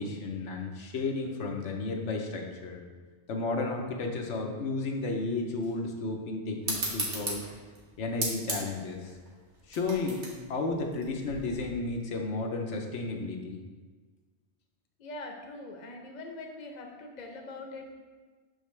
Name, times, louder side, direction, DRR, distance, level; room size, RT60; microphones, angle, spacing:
voice 1, 0.0-2.8 3.3-7.4 8.0-9.2 9.7-13.6, left 3 dB, 90° left, 2 dB, 1.1 m, -33 dB
sound 1, 6.6-11.7, right 2 dB, 80° right, 1.4 m, -36 dB
voice 2, 15.0-17.9, left 2 dB, 45° left, 1 dB, 0.8 m, -42 dB
6.3 x 5.1 x 3.2 m, 1.4 s
omnidirectional pair, 1.2 m